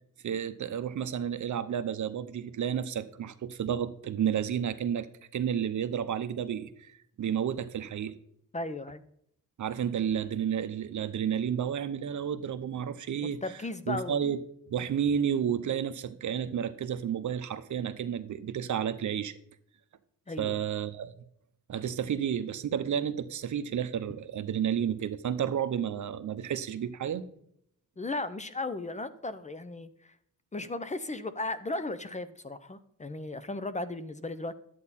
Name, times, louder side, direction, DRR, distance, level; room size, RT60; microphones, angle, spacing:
voice 1, 0.2-5.1 5.3-8.1 9.6-13.4 13.9-14.4 14.7-19.3 20.4-21.1 21.7-27.2, right 8 dB, 60° right, 0.8 m, -31 dB
voice 2, 8.5-9.0 13.4-14.2 20.3-20.7 28.0-30.1 30.5-34.5, left 2 dB, 20° left, 0.6 m, -36 dB
11.0 x 8.5 x 4.1 m
wide cardioid pair, 120°, 33 cm